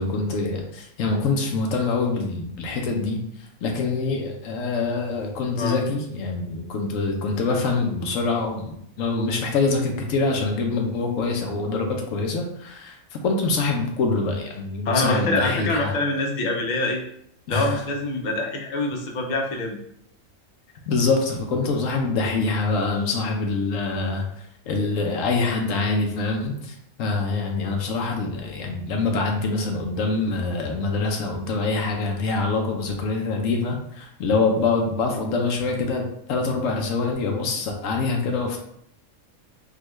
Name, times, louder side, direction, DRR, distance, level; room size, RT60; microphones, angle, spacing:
voice 1, 0.0-3.2 3.6-13.0 13.2-15.9 17.5-17.8 20.9-24.3 24.7-38.6, left 3 dB, 75° left, 2 dB, 1.0 m, -25 dB
voice 2, 14.8-17.0 17.5-19.8, left 2 dB, 55° left, 1 dB, 0.5 m, -25 dB
3.7 x 2.2 x 3.0 m, 0.71 s
omnidirectional pair, 1.4 m